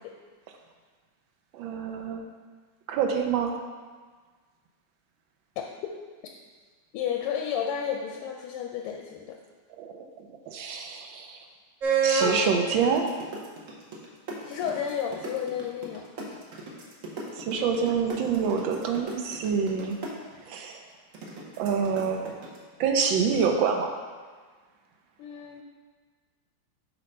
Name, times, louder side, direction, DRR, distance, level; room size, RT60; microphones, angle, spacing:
voice 1, 1.5-2.2 2.9-3.5 9.8-11.4 12.0-13.1 17.4-20.0 20.5-20.8 21.6-22.3 22.8-23.9, right 6 dB, 75° right, 4 dB, 1.2 m, -27 dB
voice 2, 6.9-9.4 14.4-16.0 25.2-25.6, left 8 dB, 90° left, 2 dB, 1.5 m, -32 dB
sound 1, 11.8-12.4 12.8-20.1 21.1-22.6, right 5 dB, 55° right, 1.0 m, -29 dB
7.5 x 3.1 x 5.2 m, 1.5 s
omnidirectional pair, 2.4 m